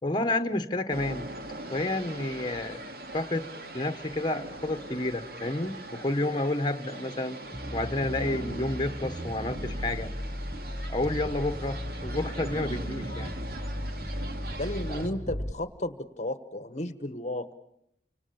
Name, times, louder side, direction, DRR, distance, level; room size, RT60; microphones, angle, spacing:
voice 1, 0.0-1.3 1.7-2.8 3.1-3.5 3.7-7.4 7.7-10.1 10.9-13.3 14.9-15.2, left 2 dB, 25° left, 9 dB, 1.4 m, -30 dB
sound 1, 0.9-15.1, right 2 dB, 55° right, 2.9 m, -41 dB
sound 2, 7.5-15.5, equal, ahead, 1.0 m, -36 dB
voice 2, 14.5-17.5, left 1 dB, 40° left, 11 dB, 1.3 m, -33 dB
30.0 x 26.5 x 7.1 m, 0.75 s
head